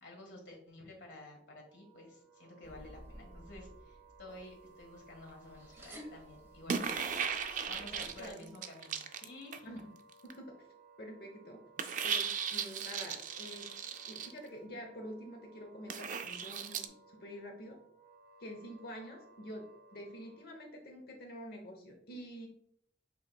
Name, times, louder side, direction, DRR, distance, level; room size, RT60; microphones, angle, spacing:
voice 1, 0.0-7.1 7.4-9.8, left 2 dB, 90° left, 0 dB, 1.6 m, -52 dB
Wind instrument woodwind instrument, 1.6-20.7, right 3 dB, 65° right, 1.1 m, -61 dB
sound 1, 2.6-8.3, equal, 15° right, 1.0 m, -54 dB
sound 2, 6.7-9.8 10.1-10.3 11.8-14.3 15.9-16.9, right 7 dB, 45° right, 0.4 m, -37 dB
voice 2, 8.0-8.6 9.7-9.9 10.2-10.6 11.0-11.6 12.0-13.7 14.1-17.8 18.4-19.6 19.9-22.5, equal, 60° left, 2 dB, 0.9 m, -47 dB
7.5 x 3.1 x 2.2 m, 0.66 s
head